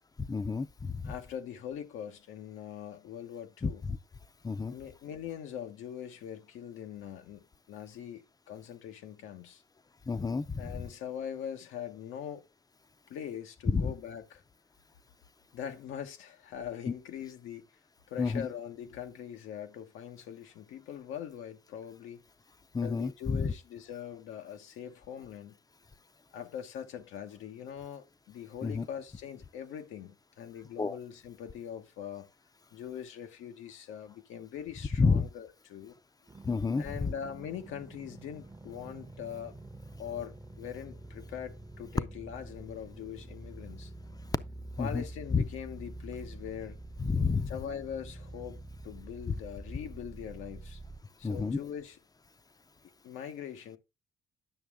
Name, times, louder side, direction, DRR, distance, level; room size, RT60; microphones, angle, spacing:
voice 1, 0.2-1.1 3.6-3.7 4.4-4.7 10.1-10.6 13.7-13.9 18.2-18.5 22.7-23.5 28.6-28.9 30.8-30.9 35.0-35.3 36.4-37.1 44.8-45.0 45.3-45.4 47.0-47.5 51.2-51.6, left 4 dB, 20° left, 0.5 m, -29 dB
voice 2, 1.0-3.8 4.7-9.6 10.6-12.5 13.1-14.4 15.5-17.6 18.1-22.2 22.8-25.6 26.3-32.3 32.7-36.0 36.8-39.5 40.0-43.9 44.8-46.8 47.5-50.8 51.2-52.0 53.0-53.8, left 9 dB, 85° left, 1.0 m, -42 dB
sound 1, 36.3-51.0, right 2 dB, 15° right, 0.8 m, -47 dB
9.2 x 6.2 x 3.5 m
cardioid pair, 90°, 20 cm